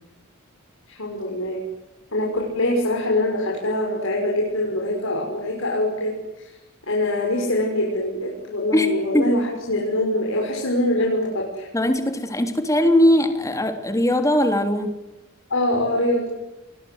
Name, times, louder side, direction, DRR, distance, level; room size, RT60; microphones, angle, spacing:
voice 1, 0.9-1.6 2.1-6.1 6.9-11.7 15.5-16.2, left 1 dB, 75° left, -1 dB, 6.4 m, -23 dB
voice 2, 8.7-9.3 11.7-15.0, left 1 dB, 15° left, 6 dB, 3.3 m, -20 dB
29.5 x 22.5 x 8.2 m, 1.0 s
head